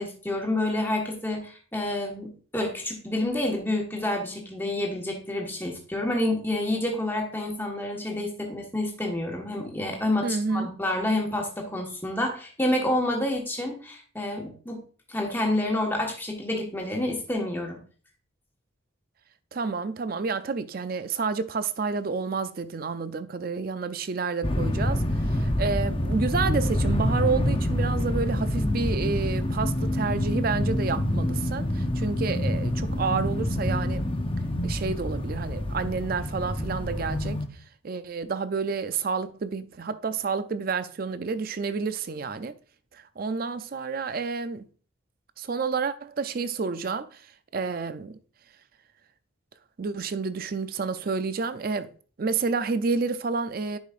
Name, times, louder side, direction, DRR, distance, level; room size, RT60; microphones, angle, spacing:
voice 1, 0.0-14.8 15.1-17.8, left 1 dB, 10° left, 1.3 m, -28 dB
voice 2, 10.2-10.7 19.5-25.0 25.3-34.1 34.6-37.4 37.8-42.6 42.9-44.7 45.4-47.2 47.5-48.2 49.8-51.9 52.2-53.8, right 4 dB, 45° right, 0.4 m, -29 dB
sound 1, 24.4-37.5, left 1 dB, 25° left, 0.7 m, -27 dB
10.0 x 5.0 x 2.5 m
head